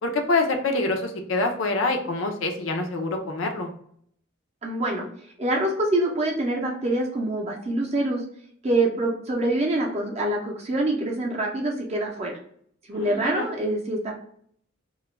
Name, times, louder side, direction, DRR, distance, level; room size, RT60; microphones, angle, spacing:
voice 1, 0.0-3.7 13.0-13.5, left 2 dB, 85° left, 4 dB, 0.5 m, -26 dB
voice 2, 4.6-5.0 5.4-8.2 8.6-12.4 12.9-14.2, right 1 dB, 35° right, -1 dB, 0.5 m, -25 dB
2.3 x 2.1 x 3.0 m, 0.64 s
head